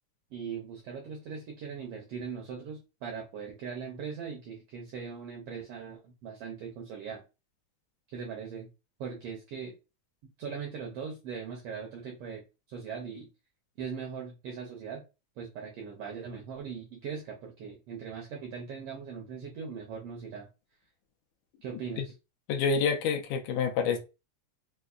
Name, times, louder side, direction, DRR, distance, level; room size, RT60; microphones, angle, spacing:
voice 1, 0.3-7.2 8.1-8.7 9.0-9.7 10.4-12.4 12.7-13.3 13.8-15.0 15.4-20.5 21.6-22.1, right 6 dB, 85° right, 1.3 m, -40 dB
voice 2, 22.5-24.0, left 5 dB, 80° left, 2.0 m, -27 dB
5.2 x 2.0 x 2.3 m
omnidirectional pair, 3.4 m